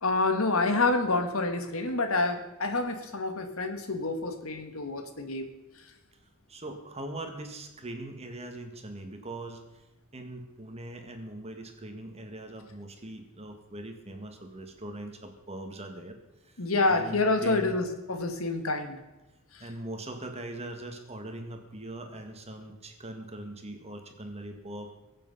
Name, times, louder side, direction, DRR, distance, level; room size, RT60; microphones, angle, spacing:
voice 1, 0.0-5.5 16.6-19.0, left 3 dB, 75° left, 7 dB, 1.7 m, -27 dB
voice 2, 6.5-9.6 10.1-16.2 16.4-17.8 19.6-24.9, right 1 dB, 30° right, 5 dB, 1.9 m, -41 dB
22.0 x 7.7 x 5.6 m, 1.0 s
head